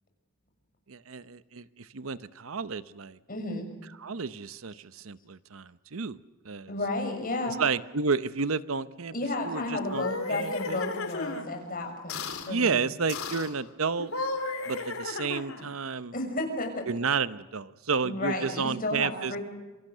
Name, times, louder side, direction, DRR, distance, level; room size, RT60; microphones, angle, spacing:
voice 1, 0.9-3.2 4.0-6.2 6.4-6.7 7.5-9.1 9.4-10.8 12.4-14.1 14.7-16.1 16.9-19.3, right 5 dB, 70° right, 14 dB, 0.8 m, -31 dB
voice 2, 3.3-3.6 6.7-7.6 9.1-12.9 16.1-16.7 18.0-19.4, left 2 dB, 45° left, 3 dB, 6.7 m, -32 dB
sound 1, 9.8-11.5 12.1-12.5 13.1-13.5 14.0-15.7, left 3 dB, 80° left, 3.2 m, -34 dB
27.0 x 25.0 x 6.8 m, 1.2 s
head